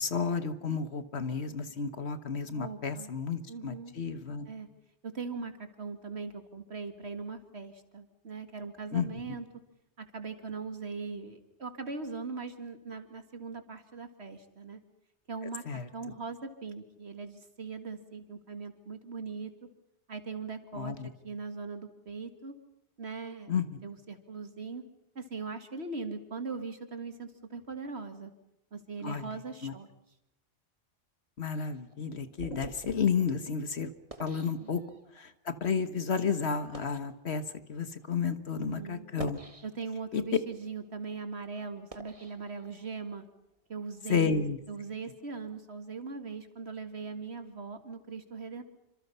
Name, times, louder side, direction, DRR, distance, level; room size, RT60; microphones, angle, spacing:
voice 1, 0.0-4.5 8.9-9.4 15.7-15.9 20.7-21.1 23.5-23.6 29.0-29.3 29.6-29.7 31.4-33.9 34.2-34.8 35.1-37.4 37.7-39.4 40.1-40.2 44.1-44.6, left 5 dB, 65° left, 12 dB, 1.7 m, -31 dB
voice 2, 2.5-3.1 3.5-3.9 4.5-4.7 5.0-9.4 10.0-14.8 15.3-19.5 20.1-20.9 21.2-22.5 23.0-23.5 23.8-24.8 25.1-28.3 28.7-29.9 34.6-34.7 38.6-39.1 39.6-43.3 43.7-48.6, right 4 dB, 65° right, 8 dB, 2.5 m, -40 dB
sound 1, 31.5-35.2 35.9-36.0 36.6-37.1 37.9-38.0 39.0-40.1 40.6-43.1, right 2 dB, 30° right, 2.0 m, -49 dB
28.0 x 26.0 x 5.6 m, 0.85 s
omnidirectional pair, 1.2 m